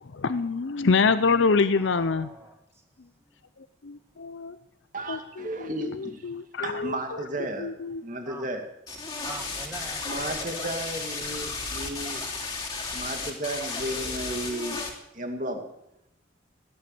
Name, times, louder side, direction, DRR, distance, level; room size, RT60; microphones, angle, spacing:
voice 1, 0.0-2.3 3.9-4.6 5.1-5.9 6.2-7.0 7.6-8.0, left 4 dB, 70° left, 12 dB, 0.6 m, -25 dB
voice 2, 1.7-2.8 3.2-3.3 8.3-8.5 9.2-10.6, right 2 dB, 15° right, 4 dB, 2.0 m, -43 dB
voice 3, 4.9-6.3 6.6-8.6 10.0-12.3 12.9-14.8 15.1-15.6, right 1 dB, 40° right, 5 dB, 2.2 m, -34 dB
sound 1, 8.9-14.9, left 4 dB, 20° left, 2.9 m, -34 dB
16.5 x 10.5 x 7.7 m, 0.82 s
head